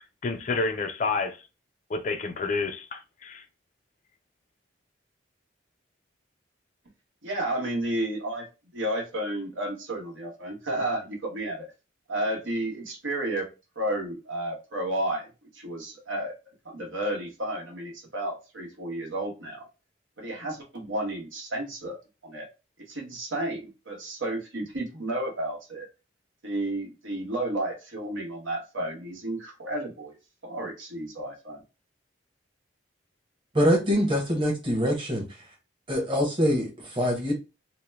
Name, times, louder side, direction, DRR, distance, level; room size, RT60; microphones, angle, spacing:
voice 1, 0.2-1.4 1.9-3.4, left 3 dB, 40° left, 0.3 m, -29 dB
voice 2, 7.2-8.5 8.7-11.7 12.1-13.5 13.7-19.7 20.2-22.0 22.2-22.5 22.8-25.9 26.4-30.1 30.4-31.6, right 1 dB, 85° right, 1.2 m, -32 dB
voice 3, 33.5-35.2 35.9-37.3, equal, 25° right, 1.0 m, -24 dB
2.9 x 2.1 x 3.3 m
head